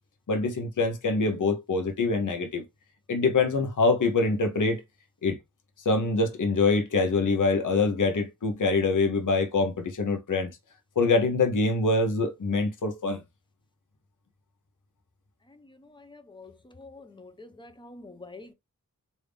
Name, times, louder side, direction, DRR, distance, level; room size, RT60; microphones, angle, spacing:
voice 1, 0.3-2.6 3.1-4.8 5.2-5.4 5.8-10.5 11.0-13.2, left 3 dB, 60° left, 0.8 m, -24 dB
voice 2, 16.1-16.5 16.8-18.5, left 3 dB, 15° left, 0.6 m, -46 dB
3.5 x 2.7 x 3.3 m
wide cardioid pair, 90°, 35 cm